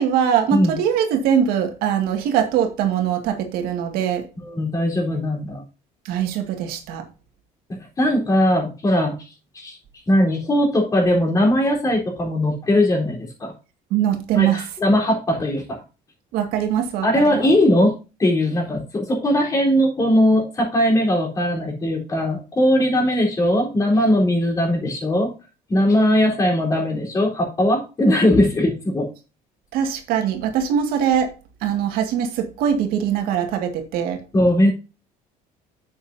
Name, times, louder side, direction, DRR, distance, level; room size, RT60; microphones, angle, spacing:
voice 1, 0.0-4.2 6.1-7.0 13.9-14.6 16.3-17.5 29.7-31.3 31.6-34.2, right 9 dB, 80° right, 2.1 m, -22 dB
voice 2, 4.4-5.6 8.0-9.3 9.5-9.8 10.1-13.5 14.3-15.8 17.0-17.9 18.2-25.3 25.7-29.1 34.3-34.7, left 1 dB, 20° left, 3.9 m, -19 dB
9.8 x 7.9 x 2.7 m
cardioid pair, 150°, 15 cm